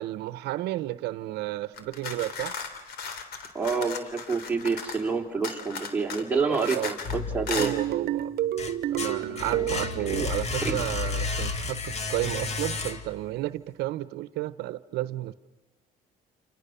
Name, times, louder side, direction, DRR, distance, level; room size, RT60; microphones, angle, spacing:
voice 1, 0.0-2.6 6.5-6.9 7.6-8.3 8.9-15.3, right 16 dB, 85° right, 14 dB, 0.9 m, -32 dB
sound 1, 1.7-5.1 5.4-7.2 7.5-7.7, left 5 dB, 70° left, 3.5 m, -36 dB
voice 2, 3.5-7.7 9.5-9.7 10.0-10.3 10.6-10.8, right 4 dB, 10° right, 0 dB, 4.1 m, -28 dB
sound 2, 7.0-7.9 8.3-13.3, left 4 dB, 40° left, 2.2 m, -32 dB
sound 3, 7.6-10.0, right 11 dB, 70° right, 1.1 m, -29 dB
30.0 x 28.5 x 6.9 m, 1.2 s
cardioid pair, 110°, 17 cm